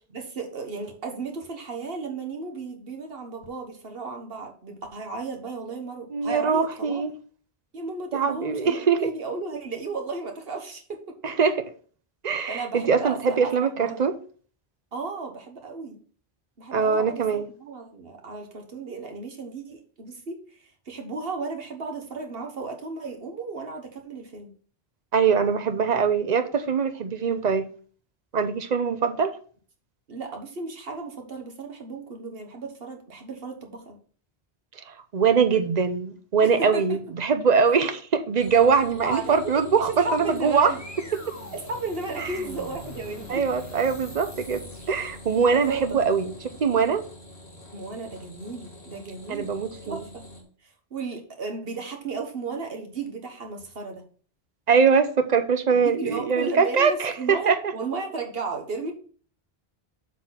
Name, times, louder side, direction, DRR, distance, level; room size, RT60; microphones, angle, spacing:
voice 1, 0.1-7.0 7.7-11.3 12.5-14.0 14.9-16.0 16.6-24.5 30.1-34.0 36.4-37.0 39.0-40.8 41.5-43.4 45.5-46.3 47.7-49.5 49.8-50.0 50.6-54.0 55.7-58.9, right 3 dB, 65° right, 1.6 m, -34 dB
voice 2, 6.1-7.1 8.1-9.1 11.2-11.6 12.2-14.1 16.7-17.5 25.1-27.7 28.3-29.4 34.9-40.7 42.2-42.4 43.3-46.3 46.6-47.0 49.3-50.0 54.7-57.6, right 6 dB, 45° right, 0.8 m, -22 dB
sound 1, 38.4-50.4, left 1 dB, 90° left, 2.1 m, -45 dB
sound 2, 39.8-46.2, left 1 dB, 15° left, 1.4 m, -45 dB
7.2 x 4.1 x 5.8 m
omnidirectional pair, 1.1 m